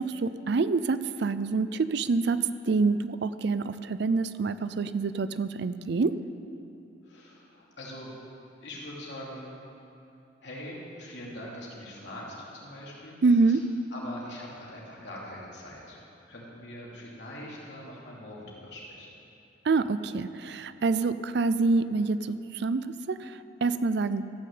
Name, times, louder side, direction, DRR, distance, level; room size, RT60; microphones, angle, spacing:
voice 1, 0.0-6.2 13.2-13.6 19.6-24.3, right 4 dB, 65° right, 13 dB, 0.5 m, -26 dB
voice 2, 7.0-8.1 8.6-9.6 10.4-13.2 13.5-13.6 13.9-16.0 16.3-19.1, left 1 dB, 75° left, -4 dB, 2.7 m, -42 dB
14.0 x 6.4 x 7.8 m, 2.8 s
head